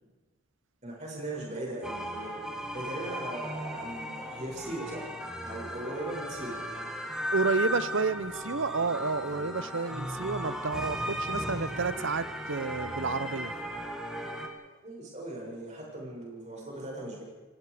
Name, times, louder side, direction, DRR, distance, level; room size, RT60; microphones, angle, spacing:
voice 1, 0.8-2.4 2.7-5.1 5.4-6.6 10.5-10.6 14.8-17.2, right 1 dB, 30° right, -3 dB, 7.0 m, -39 dB
sound 1, 1.8-14.5, equal, 5° right, 1.9 m, -36 dB
voice 2, 7.3-13.5, right 4 dB, 55° right, 16 dB, 0.8 m, -30 dB
29.0 x 18.0 x 5.0 m, 1.2 s
head